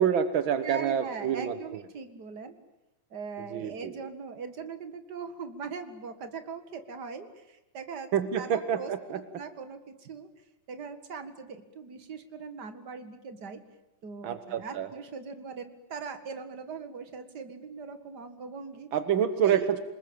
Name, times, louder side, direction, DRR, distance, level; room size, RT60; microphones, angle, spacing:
voice 1, 0.0-1.6 3.5-3.9 8.1-9.2 14.2-14.9 18.9-19.8, right 8 dB, 65° right, 11 dB, 1.2 m, -27 dB
voice 2, 0.6-2.6 3.1-8.1 8.4-10.3 10.7-13.6 14.0-18.9 19.4-19.7, right 5 dB, 35° right, 9 dB, 2.0 m, -40 dB
28.0 x 20.5 x 9.0 m, 0.96 s
omnidirectional pair, 3.7 m